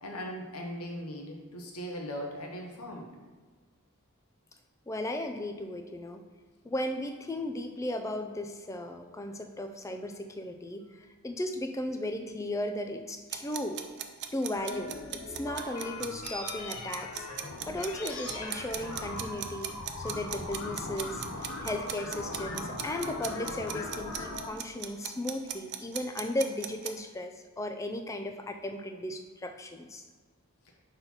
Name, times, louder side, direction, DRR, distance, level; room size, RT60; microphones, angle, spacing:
voice 1, 0.0-3.1, equal, 90° left, 1 dB, 1.1 m, -39 dB
voice 2, 4.9-6.2 6.6-13.8 14.3-30.0, left 1 dB, 15° left, 6 dB, 0.3 m, -36 dB
sound 1, 13.3-26.9, right 11 dB, 50° right, 0.4 m, -38 dB
sound 2, 14.5-24.5, left 2 dB, 70° left, 0.8 m, -39 dB
5.5 x 4.0 x 4.4 m, 1.4 s
head